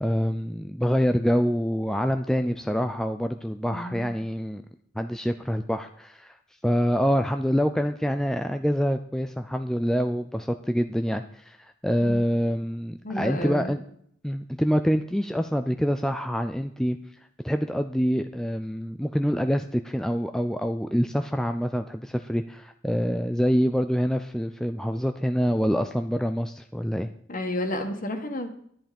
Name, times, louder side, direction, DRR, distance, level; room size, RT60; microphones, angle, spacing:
voice 1, 0.0-4.6 5.0-6.4 6.6-13.8 14.2-17.0 17.4-27.1, equal, 5° left, 7 dB, 0.4 m, -26 dB
voice 2, 3.7-4.1 12.0-12.3 13.0-13.8 27.3-28.5, left 1 dB, 45° left, 5 dB, 1.9 m, -31 dB
11.0 x 10.5 x 5.3 m, 0.66 s
head